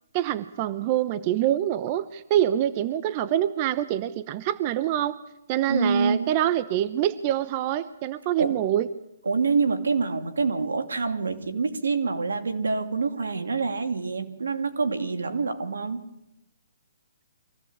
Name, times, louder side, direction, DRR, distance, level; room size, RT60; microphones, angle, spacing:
voice 1, 0.1-5.2 5.5-8.9, right 12 dB, 35° right, 13 dB, 0.9 m, -25 dB
voice 2, 5.7-6.3 8.4-8.6 9.2-16.0, right 4 dB, 85° right, 8 dB, 2.8 m, -26 dB
24.5 x 16.0 x 8.8 m, 0.86 s
hypercardioid pair, 145°, 0 cm